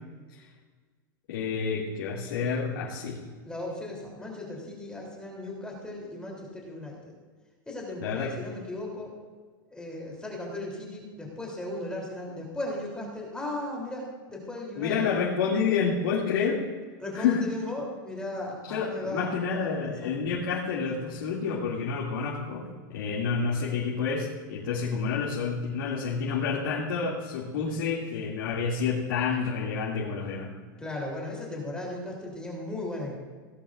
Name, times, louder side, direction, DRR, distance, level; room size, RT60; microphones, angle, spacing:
voice 1, 1.3-3.2 8.0-8.3 14.8-16.6 17.1-17.4 18.7-30.5, left 5 dB, 85° left, -5 dB, 2.5 m, -29 dB
voice 2, 3.4-7.1 7.7-9.1 9.7-15.2 17.0-20.1 30.8-33.1, left 1 dB, 5° left, -2 dB, 3.3 m, -36 dB
18.0 x 11.0 x 2.6 m, 1.5 s
supercardioid pair, 135°, 11 cm